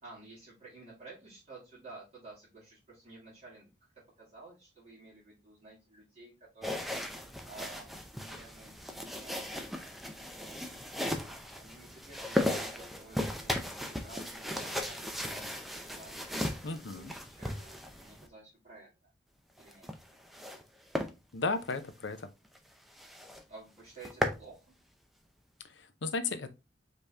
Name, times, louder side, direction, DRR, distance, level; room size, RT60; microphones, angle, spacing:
voice 1, 0.0-3.7 4.2-6.9 7.4-9.5 10.2-10.7 11.6-15.4 15.9-16.1 16.9-18.9 19.6-19.9 23.5-24.6, right 3 dB, 35° right, 2.3 m, -52 dB
sound 1, 6.6-18.3 19.6-20.6 20.9-21.1 21.6-21.8 22.2-22.3 22.6-22.7 23.0-23.4 23.8-24.4, left 1 dB, ahead, 0.5 m, -36 dB
voice 2, 16.6-17.1 21.3-22.3 25.6-26.5, left 3 dB, 85° left, 0.6 m, -35 dB
5.2 x 2.9 x 3.4 m
head